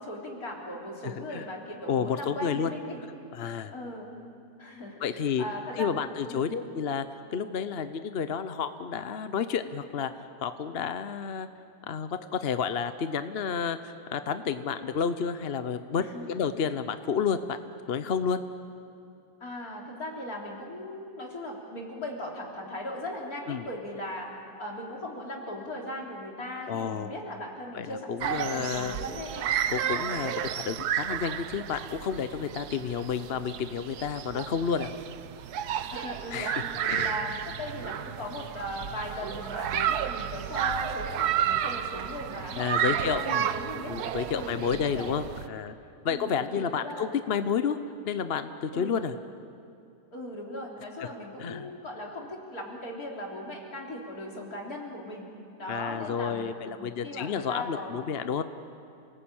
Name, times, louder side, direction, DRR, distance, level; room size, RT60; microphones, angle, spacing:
voice 1, 0.0-3.0 3.7-4.1 4.6-6.5 16.0-16.4 19.4-24.3 24.6-29.5 29.8-30.1 35.9-36.5 36.8-43.9 44.3-45.2 46.1-47.2 48.7-49.1 50.1-55.3 55.6-58.1, left 1 dB, 70° left, -1 dB, 4.1 m, -38 dB
voice 2, 1.0-1.5 1.9-2.7 3.3-3.7 5.0-5.4 5.8-10.1 10.4-11.5 11.9-17.6 17.9-18.4 23.5-23.6 26.7-27.1 27.7-29.0 29.7-34.9 36.3-37.1 42.6-43.5 43.9-45.7 46.0-47.8 48.0-49.1 51.0-51.1 51.4-51.7 55.7-58.4, left 7 dB, 50° left, 10 dB, 0.9 m, -30 dB
sound 1, 28.2-45.5, right 10 dB, 85° right, 1.3 m, -32 dB
28.5 x 19.5 x 8.8 m, 2.5 s
omnidirectional pair, 1.6 m